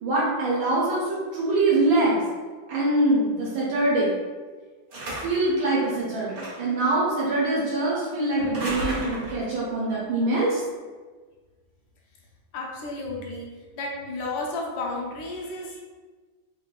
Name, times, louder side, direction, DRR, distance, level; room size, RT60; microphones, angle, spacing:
voice 1, 0.0-2.2 2.7-4.1 5.2-10.6, right 2 dB, 75° right, -6 dB, 1.5 m, -24 dB
sound 1, 4.9-5.5 6.3-6.8 8.4-9.5, right 1 dB, 50° right, 1.6 m, -33 dB
voice 2, 12.5-13.5 13.8-15.8, left 2 dB, 70° left, -2 dB, 1.4 m, -32 dB
3.9 x 3.7 x 2.3 m, 1.4 s
omnidirectional pair, 2.2 m